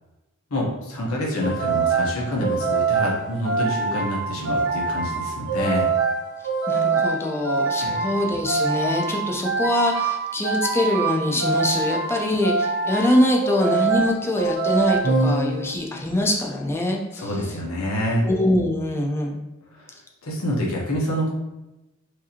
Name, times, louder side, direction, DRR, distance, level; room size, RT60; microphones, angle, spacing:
voice 1, 0.5-5.9 7.8-7.9 17.2-18.2 19.7-19.8 20.2-21.3, equal, 80° left, -3 dB, 1.1 m, -26 dB
sound 1, 1.4-16.0, right 4 dB, 55° right, 0.6 m, -24 dB
voice 2, 6.7-17.3 18.2-19.4, left 1 dB, 10° left, -1 dB, 0.5 m, -23 dB
4.8 x 2.6 x 2.9 m, 0.98 s
head